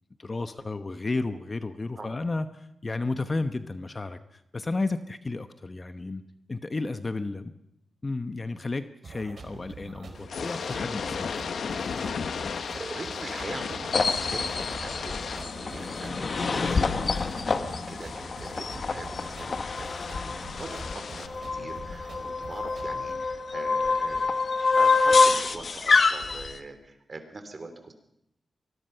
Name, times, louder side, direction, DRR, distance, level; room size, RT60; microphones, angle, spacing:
voice 1, 0.2-6.2 6.5-7.5 8.0-11.3, left 3 dB, 30° left, 10 dB, 1.0 m, -32 dB
sound 1, 9.0-23.1, right 3 dB, 55° right, 4.6 m, -45 dB
sound 2, 10.1-21.3, left 6 dB, 70° left, 1.2 m, -36 dB
voice 2, 12.7-17.2 17.4-24.4 24.8-27.9, right 3 dB, 35° right, 8 dB, 3.3 m, -42 dB
sound 3, 13.9-26.6, left 4 dB, 50° left, 1.4 m, -26 dB
24.5 x 21.0 x 5.7 m, 0.79 s
wide cardioid pair, 115°, 0 cm